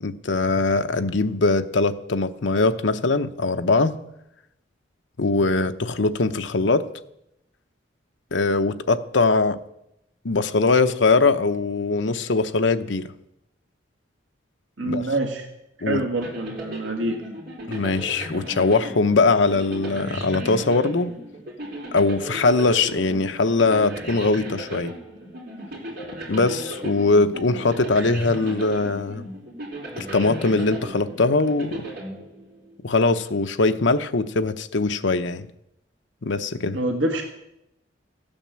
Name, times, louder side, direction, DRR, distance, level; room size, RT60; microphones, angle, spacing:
voice 1, 0.0-4.0 5.2-6.8 8.3-9.6 10.2-13.1 14.8-15.1 15.8-16.0 17.7-21.2 21.9-24.9 26.3-29.3 30.0-31.9 32.8-35.5 36.2-36.8, left 3 dB, 75° left, 9 dB, 0.8 m, -21 dB
voice 2, 14.8-15.5 15.8-17.2 36.7-37.2, right 2 dB, 80° right, 3 dB, 1.6 m, -26 dB
sound 1, 16.2-32.8, right 1 dB, 50° right, 3.9 m, -36 dB
15.0 x 8.9 x 7.5 m, 0.83 s
head